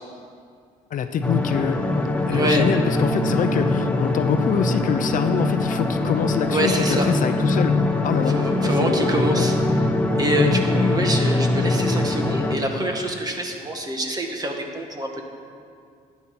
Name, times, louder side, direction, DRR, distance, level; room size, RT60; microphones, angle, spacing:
voice 1, 0.9-1.8 2.3-7.7 8.0-9.5 10.3-10.6, left 7 dB, 50° left, 8 dB, 0.7 m, -25 dB
sound 1, 1.2-12.6, left 2 dB, 5° left, 1.0 m, -22 dB
voice 2, 2.3-2.6 6.5-7.1 8.3-9.6 10.2-15.2, right 1 dB, 20° right, 2 dB, 1.7 m, -25 dB
12.0 x 9.8 x 6.1 m, 2.2 s
cardioid pair, 110°, 17 cm